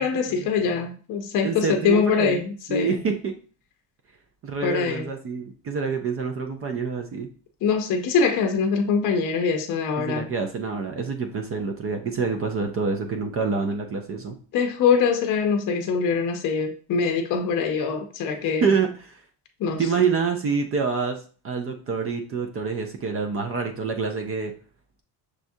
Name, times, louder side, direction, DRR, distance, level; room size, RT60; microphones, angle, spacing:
voice 1, 0.0-3.0 4.6-5.1 7.6-10.3 14.5-18.7 19.6-19.8, left 5 dB, 50° left, 0.6 m, -23 dB
voice 2, 1.4-2.4 2.7-3.3 4.4-7.3 10.0-14.4 18.6-19.2 19.8-21.2 21.4-24.5, right 5 dB, 35° right, 0.4 m, -26 dB
6.2 x 2.3 x 2.6 m
cardioid pair, 150°, 41 cm